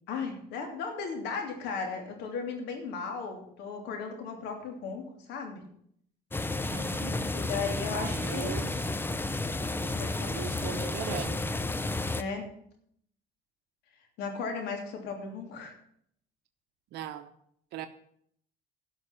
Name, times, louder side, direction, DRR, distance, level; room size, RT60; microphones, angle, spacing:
voice 1, 0.1-5.6 7.3-8.7 10.0-10.4 12.2-12.5 14.2-15.7, left 5 dB, 85° left, 3.0 m, -36 dB
sound 1, 6.3-12.2, left 2 dB, 15° left, 0.7 m, -32 dB
voice 2, 6.6-7.2 7.9-8.8 10.3-11.4 16.9-17.3 17.7-17.9, right 11 dB, 80° right, 0.9 m, -39 dB
11.5 x 6.0 x 8.5 m
cardioid pair, 110°, 17 cm